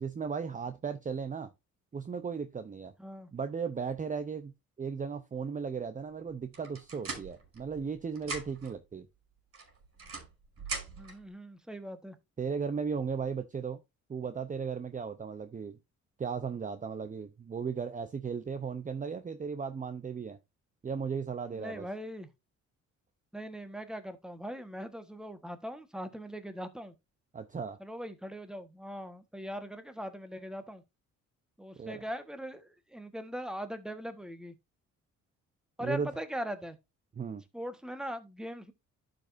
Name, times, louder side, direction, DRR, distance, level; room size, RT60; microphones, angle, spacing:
voice 1, 0.0-1.5 1.9-2.9 3.3-4.5 4.8-9.1 12.4-13.8 14.1-15.7 16.2-20.4 20.8-21.9 27.3-27.8 31.8-32.0 35.8-36.1 37.1-37.4, right 6 dB, 25° right, 0.7 m, -36 dB
sound 1, 6.5-7.9 8.2-8.8 9.5-11.2, right 3 dB, 50° right, 5.0 m, -41 dB
voice 2, 11.0-12.2 21.5-22.3 23.3-26.9 27.8-30.8 31.6-34.5 35.8-36.8 37.5-38.7, equal, ahead, 1.4 m, -40 dB
12.0 x 5.1 x 2.6 m
cardioid pair, 90°, 30 cm